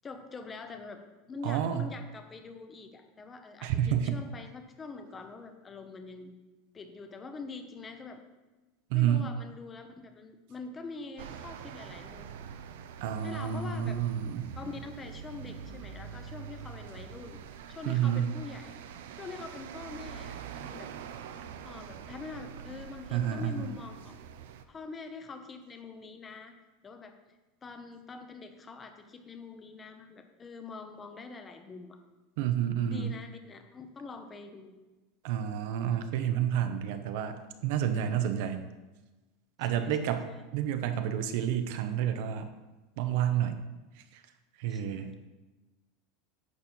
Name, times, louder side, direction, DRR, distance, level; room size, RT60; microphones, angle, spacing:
voice 1, 0.0-1.0 1.3-6.3 6.7-8.2 8.9-12.3 13.2-14.0 14.6-17.4 17.7-18.7 19.2-20.9 21.6-24.2 24.7-26.5 26.8-27.1 27.6-32.0 32.9-34.7 39.6-40.4 44.7-45.3, left 4 dB, 15° left, 6 dB, 0.8 m, -44 dB
voice 2, 1.4-1.9 3.6-4.2 8.9-9.3 13.0-14.5 17.9-18.3 23.1-23.7 32.4-33.1 35.2-38.6 39.6-42.5 43.0-43.6 44.6-45.1, right 9 dB, 55° right, 8 dB, 0.9 m, -29 dB
sound 1, 11.2-24.6, right 8 dB, 85° right, 0.7 m, -45 dB
10.5 x 4.4 x 7.1 m, 1.1 s
supercardioid pair, 170°, 0 cm